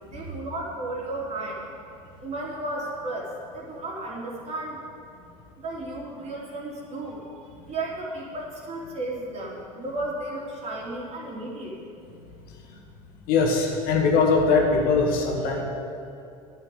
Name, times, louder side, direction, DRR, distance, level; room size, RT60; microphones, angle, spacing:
voice 1, 0.0-1.6 2.2-4.8 5.6-7.3 7.6-11.8, right 2 dB, 35° right, -3 dB, 3.2 m, -34 dB
voice 2, 13.3-15.6, left 4 dB, 55° left, 1 dB, 2.0 m, -21 dB
10.0 x 6.7 x 8.7 m, 2.5 s
hypercardioid pair, 85°, 19 cm